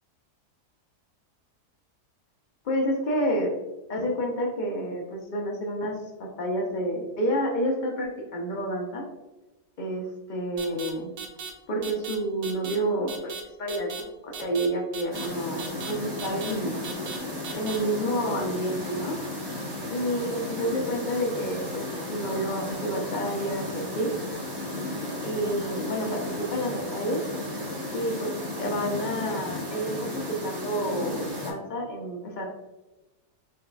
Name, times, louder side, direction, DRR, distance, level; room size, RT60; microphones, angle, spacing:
voice 1, 2.6-3.5 3.9-5.9 6.2-9.0 9.8-11.1 11.7-16.8 17.5-19.1 19.9-24.1 25.2-27.2 27.9-28.3 28.6-29.9 30.3-32.5, equal, 60° left, 0 dB, 0.4 m, -29 dB
sound 1, 10.6-10.9 11.2-11.5 11.8-12.2 12.4-12.8 13.1-13.4 13.7-14.0 14.3-14.7 14.9-15.3 15.6-15.9 16.2-16.5 16.8-17.2 17.4-17.8, right 6 dB, 70° right, 1.1 m, -37 dB
sound 2, 15.1-31.5, left 1 dB, 20° right, 0.6 m, -34 dB
4.1 x 4.0 x 2.2 m, 1.1 s
omnidirectional pair, 1.6 m